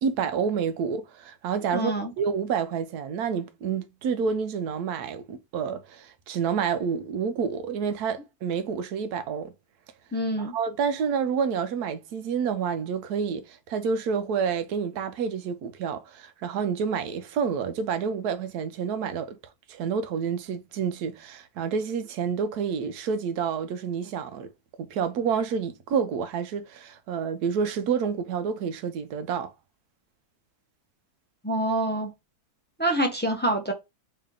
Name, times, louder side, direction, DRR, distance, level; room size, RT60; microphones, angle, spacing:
voice 1, 0.0-9.5 10.4-19.4 19.7-24.5 24.8-29.5, right 6 dB, 85° right, 1.2 m, -29 dB
voice 2, 1.7-2.1 10.1-10.5 31.4-32.1 32.8-33.7, right 1 dB, 15° left, 0.4 m, -26 dB
3.2 x 2.9 x 3.7 m
omnidirectional pair, 1.6 m